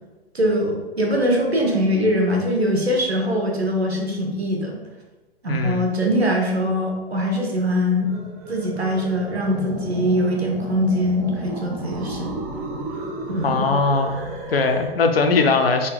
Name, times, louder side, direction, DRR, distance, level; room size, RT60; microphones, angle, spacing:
voice 1, 0.3-4.8 5.4-8.1 8.5-12.3 13.3-13.7, equal, 90° right, 0 dB, 0.9 m, -22 dB
voice 2, 5.5-5.9 13.4-14.2 14.5-15.9, left 4 dB, 70° left, 6 dB, 0.6 m, -20 dB
sound 1, 8.0-14.9, right 2 dB, 15° right, 0.3 m, -33 dB
4.0 x 3.7 x 2.3 m, 1.2 s
figure-of-eight pair, 115°, 31 cm